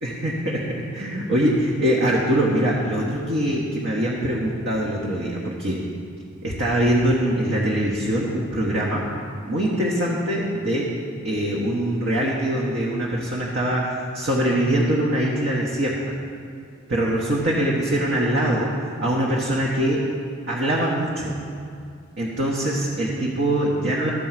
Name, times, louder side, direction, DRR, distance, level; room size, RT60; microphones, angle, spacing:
voice 1, 0.0-5.8 6.4-9.0 9.5-10.9 11.2-16.0 16.9-20.1 20.5-21.3 22.2-24.1, right 1 dB, 55° right, -4 dB, 1.2 m, -23 dB
13.5 x 4.6 x 7.5 m, 2.3 s
head